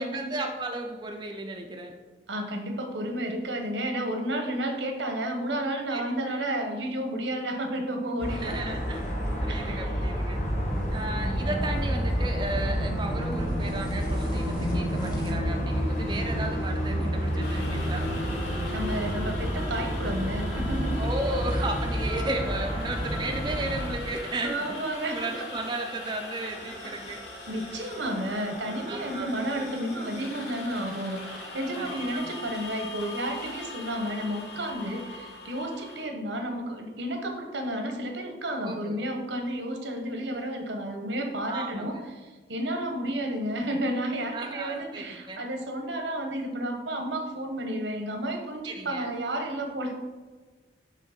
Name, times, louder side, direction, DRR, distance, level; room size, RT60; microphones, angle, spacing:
voice 1, 0.0-1.9 5.9-6.0 6.3-6.4 8.3-9.1 9.4-10.4 10.9-18.1 21.0-27.2 28.9-29.4 31.8-32.4 38.6-39.0 41.5-42.0 44.3-45.4 48.6-49.1, right 2 dB, 25° right, 3 dB, 0.4 m, -34 dB
voice 2, 2.3-8.8 9.5-9.9 18.7-21.0 24.4-25.3 26.8-26.9 27.5-42.0 42.2-49.9, right 1 dB, 85° right, 4 dB, 1.0 m, -32 dB
sound 1, 8.2-23.9, equal, 40° left, 1.5 m, -29 dB
sound 2, 9.0-15.3, equal, 20° left, 0.9 m, -37 dB
sound 3, 17.4-36.0, left 2 dB, 65° left, 1.5 m, -41 dB
6.4 x 3.1 x 5.7 m, 1.3 s
head